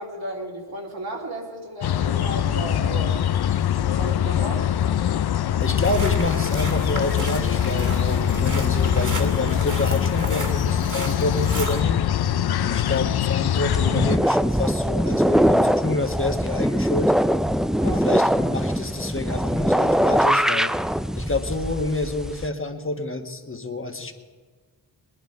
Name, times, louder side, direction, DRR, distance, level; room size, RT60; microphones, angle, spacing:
voice 1, 0.0-3.2 3.8-4.7 17.8-18.0, right 1 dB, 65° right, -2 dB, 2.6 m, -34 dB
sound 1, 1.8-14.2, left 10 dB, 70° left, 0.6 m, -23 dB
voice 2, 5.6-12.0 12.6-17.1 17.8-20.7 21.2-24.1, left 2 dB, 30° left, 5 dB, 1.5 m, -28 dB
sound 2, 5.8-11.8, right 3 dB, 50° right, 2.2 m, -34 dB
sound 3, 13.6-22.5, equal, ahead, 0.4 m, -22 dB
20.0 x 11.0 x 4.7 m, 1.5 s
cardioid pair, 60°, 40 cm